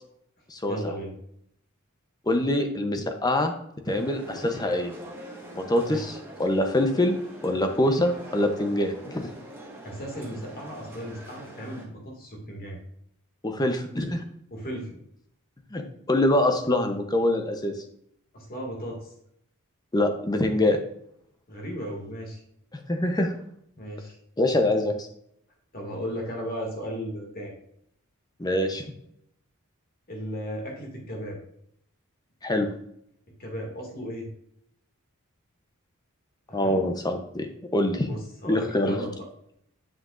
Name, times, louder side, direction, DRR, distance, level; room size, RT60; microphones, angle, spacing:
voice 1, 0.7-1.1 5.8-6.1 9.8-12.8 14.5-15.0 18.3-19.1 21.5-22.4 23.8-24.2 25.7-27.5 30.1-31.4 33.4-34.3 36.5-36.8 38.1-39.3, equal, 45° left, 0 dB, 2.1 m, -35 dB
voice 2, 2.3-3.5 3.9-4.9 5.5-7.2 7.4-9.3 13.4-14.2 15.7-15.8 16.1-17.7 19.9-20.8 22.9-23.3 24.4-25.1 28.4-28.8 32.4-32.7 36.5-38.1 38.4-39.0, left 1 dB, 20° left, 6 dB, 0.8 m, -24 dB
sound 1, 3.9-11.9, right 1 dB, 10° right, 1.5 m, -43 dB
7.7 x 5.8 x 2.5 m, 0.73 s
head